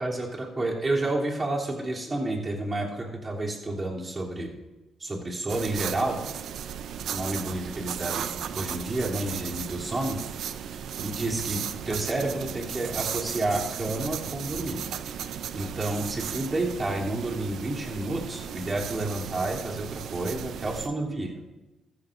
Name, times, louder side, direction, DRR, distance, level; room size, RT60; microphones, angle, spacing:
voice 1, 0.0-4.5 5.0-6.2 7.1-8.3 8.5-10.2 11.0-14.8 15.5-21.4, right 2 dB, 30° right, -2 dB, 3.0 m, -30 dB
sound 1, 5.5-20.9, right 8 dB, 70° right, 0.6 m, -35 dB
14.0 x 14.0 x 2.6 m, 1.1 s
supercardioid pair, 50°, 0 cm